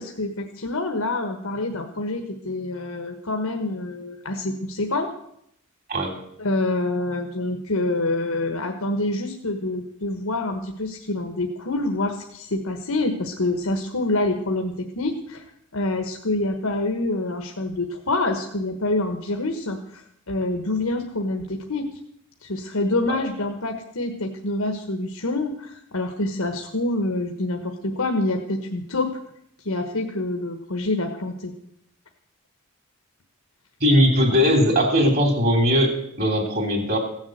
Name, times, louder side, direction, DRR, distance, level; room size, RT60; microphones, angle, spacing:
voice 1, 0.0-5.1 6.4-15.4 15.7-21.9 22.4-29.1 29.6-31.5, left 2 dB, 90° left, 3 dB, 1.3 m, -26 dB
voice 2, 33.8-37.0, equal, 50° right, 3 dB, 3.3 m, -19 dB
16.0 x 7.3 x 7.9 m, 0.75 s
head